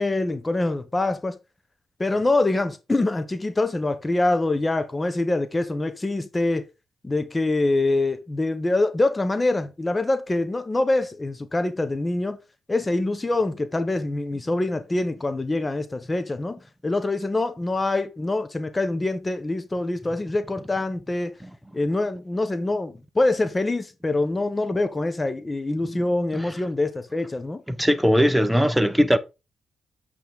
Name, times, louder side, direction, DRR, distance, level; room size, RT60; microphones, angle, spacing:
voice 1, 0.0-1.4 2.0-6.6 7.0-12.4 12.7-21.3 21.7-27.6, left 2 dB, 25° left, 1.3 m, -25 dB
voice 2, 27.7-29.2, equal, 5° right, 1.1 m, -19 dB
8.3 x 5.9 x 3.9 m
supercardioid pair, 55°, 0 cm